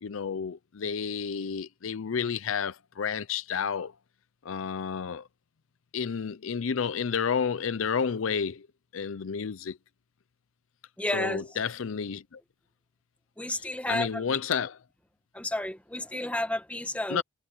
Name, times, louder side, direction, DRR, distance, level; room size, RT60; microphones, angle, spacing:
voice 1, 0.0-3.9 4.4-5.3 5.9-8.7 8.9-9.8 11.1-12.4 13.5-14.8 17.1-17.2, left 6 dB, 70° left, 0.5 m, -31 dB
voice 2, 11.0-11.4 13.4-14.2 15.3-17.2, left 1 dB, 5° left, 1.3 m, -31 dB
head